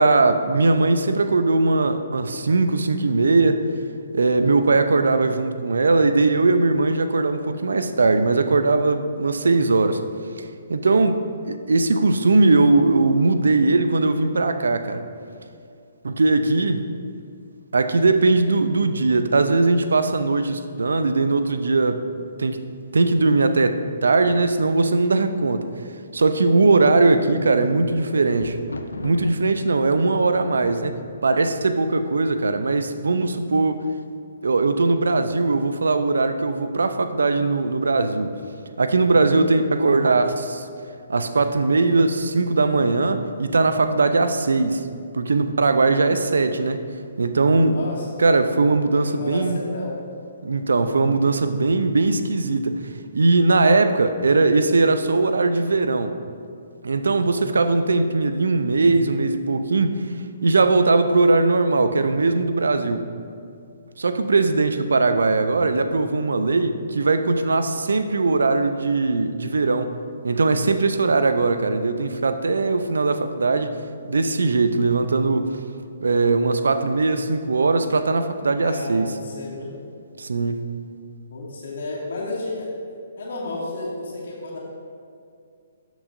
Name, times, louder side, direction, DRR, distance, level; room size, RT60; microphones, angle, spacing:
voice 1, 0.0-3.6 4.1-10.0 10.7-15.0 16.0-16.9 17.7-22.1 22.4-22.6 22.9-25.7 26.1-28.6 29.0-33.8 34.4-38.3 38.8-40.7 41.1-44.8 45.1-46.8 47.2-47.8 48.2-49.6 50.4-52.8 53.1-56.2 56.8-60.0 60.4-63.1 64.0-69.9 70.2-73.7 74.1-75.5 76.0-79.1 80.2-80.7, right 3 dB, 75° right, 9 dB, 0.5 m, -20 dB
Thunder, 27.6-32.5 33.2-33.7 34.0-34.1, left 3 dB, 80° left, 0.5 m, -38 dB
voice 2, 39.1-39.4 47.7-48.1 48.9-49.9 57.3-57.7 64.3-64.6 78.6-79.7 81.3-82.7 83.2-84.6, left 2 dB, 60° left, -5 dB, 2.1 m, -32 dB
13.0 x 6.2 x 2.6 m, 2.4 s
figure-of-eight pair, 130°, 0 cm